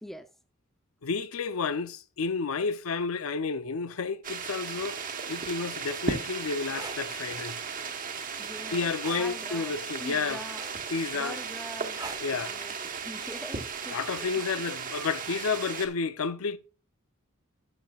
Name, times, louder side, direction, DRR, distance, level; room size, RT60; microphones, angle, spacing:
voice 1, 0.0-0.3 8.4-10.6 11.1-12.0 12.4-14.5, equal, ahead, 0.5 m, -43 dB
voice 2, 1.0-5.0 5.3-7.6 8.7-10.4 10.9-11.4 12.2-12.6 13.9-16.6, left 4 dB, 90° left, 0.6 m, -31 dB
sound 1, 4.2-15.9, right 5 dB, 40° right, 1.1 m, -36 dB
sound 2, 6.7-7.0 9.0-9.3 10.6-11.0 12.0-12.3 13.7-13.9, right 3 dB, 20° right, 1.2 m, -40 dB
12.0 x 6.9 x 2.3 m
head